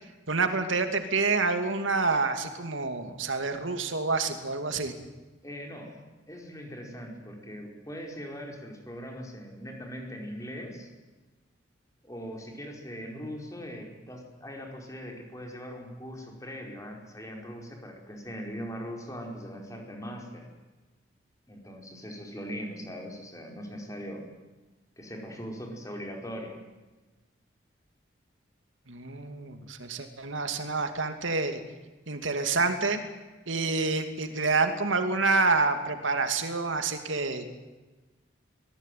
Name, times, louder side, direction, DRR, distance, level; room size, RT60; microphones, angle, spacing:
voice 1, 0.3-4.9 28.9-31.6 32.1-33.0 33.5-37.5, right 3 dB, 90° right, 7 dB, 2.6 m, -28 dB
voice 2, 5.4-10.9 12.0-20.5 21.5-24.2 25.0-26.6, equal, 15° left, 1 dB, 4.7 m, -40 dB
24.5 x 18.5 x 9.4 m, 1.2 s
head